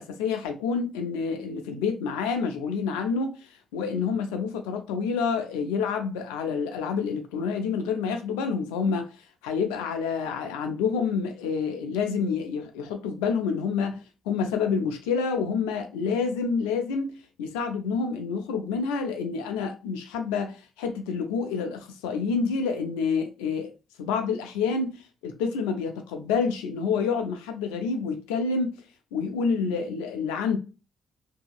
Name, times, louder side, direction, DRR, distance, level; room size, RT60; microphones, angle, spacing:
voice 1, 0.0-3.3 3.7-9.1 9.4-14.0 14.3-23.7 24.0-25.0 25.2-28.8 29.1-30.6, left 5 dB, 90° left, 0.4 m, -28 dB
2.7 x 2.7 x 2.3 m
hypercardioid pair, 50°, 0 cm